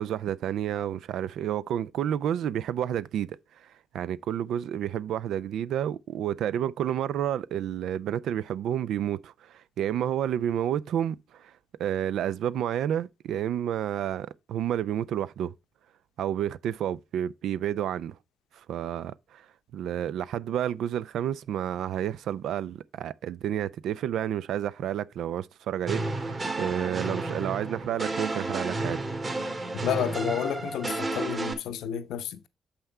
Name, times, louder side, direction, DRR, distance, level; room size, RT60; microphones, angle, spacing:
voice 1, 0.0-3.4 3.9-11.5 11.8-15.5 16.2-18.1 18.7-19.4 19.7-29.0, right 10 dB, 80° right, 0.4 m, -30 dB
sound 1, 25.9-31.5, right 2 dB, 35° right, 2.2 m, -32 dB
voice 2, 29.7-32.5, left 9 dB, 85° left, 0.7 m, -31 dB
6.7 x 5.7 x 4.4 m
supercardioid pair, 60°, 0 cm